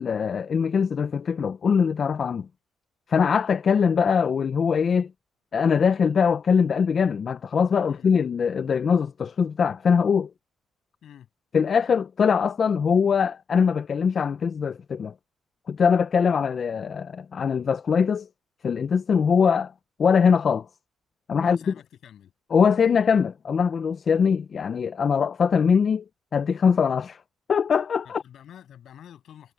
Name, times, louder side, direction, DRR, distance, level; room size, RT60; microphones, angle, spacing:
voice 1, 0.0-2.5 3.1-5.1 5.5-10.3 11.5-15.1 15.7-18.3 18.6-19.7 20.0-20.7 21.3-21.7 22.5-26.0 26.3-27.2 27.5-28.2, left 6 dB, 50° left, 0.7 m, -22 dB
voice 2, 21.4-22.3 28.0-29.5, left 10 dB, 70° left, 7.7 m, -48 dB
cardioid pair, 90°, 0 cm